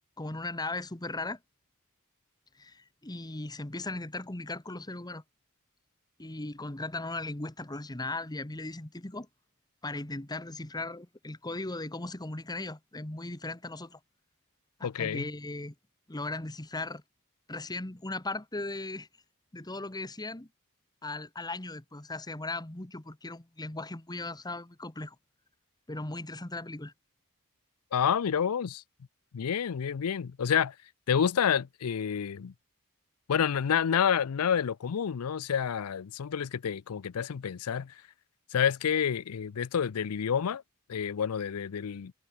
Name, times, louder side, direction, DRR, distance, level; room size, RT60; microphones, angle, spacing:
voice 1, 0.2-1.4 2.5-5.2 6.2-9.3 9.8-14.0 14.8-15.7 16.1-17.0 17.5-19.1 19.5-20.5 21.0-25.2 25.9-26.9, left 2 dB, 20° left, 1.3 m, -37 dB
voice 2, 14.8-15.3 27.9-28.8 29.3-30.7 31.1-32.5 33.3-37.9 38.5-40.6 40.9-42.1, left 7 dB, 85° left, 0.5 m, -29 dB
head